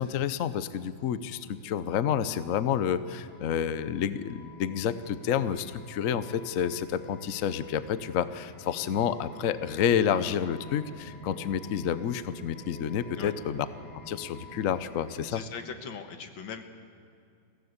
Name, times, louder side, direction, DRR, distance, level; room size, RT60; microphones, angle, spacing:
voice 1, 0.0-13.7 14.1-15.4, left 8 dB, 60° left, 13 dB, 0.9 m, -29 dB
sound 1, 1.1-15.3, left 1 dB, 5° left, 2.4 m, -49 dB
voice 2, 15.3-16.6, left 6 dB, 80° left, 7 dB, 2.1 m, -40 dB
22.0 x 16.0 x 8.1 m, 2.4 s
omnidirectional pair, 2.1 m